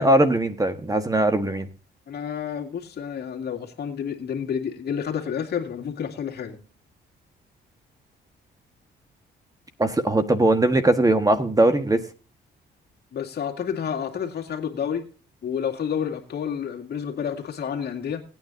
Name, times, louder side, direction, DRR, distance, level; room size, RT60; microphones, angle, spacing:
voice 1, 0.0-1.7 9.8-12.0, right 1 dB, 15° right, 9 dB, 1.4 m, -20 dB
voice 2, 2.1-6.6 13.1-15.1 15.4-18.2, left 8 dB, 55° left, 2 dB, 2.2 m, -30 dB
18.5 x 9.3 x 2.6 m, 0.35 s
cardioid pair, 90°, 20 cm